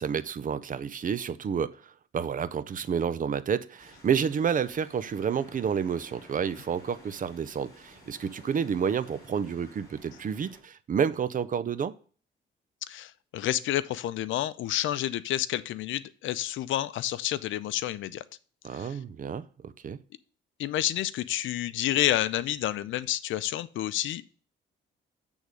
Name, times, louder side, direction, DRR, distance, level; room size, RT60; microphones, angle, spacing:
voice 1, 0.0-11.9 18.6-20.0, right 7 dB, 40° right, 0.6 m, -30 dB
sound 1, 3.8-10.6, equal, 15° left, 4.1 m, -53 dB
voice 2, 12.9-18.2 18.7-19.0 20.6-24.2, left 13 dB, 80° left, 0.5 m, -29 dB
8.2 x 3.6 x 6.2 m
cardioid pair, 90°, 20 cm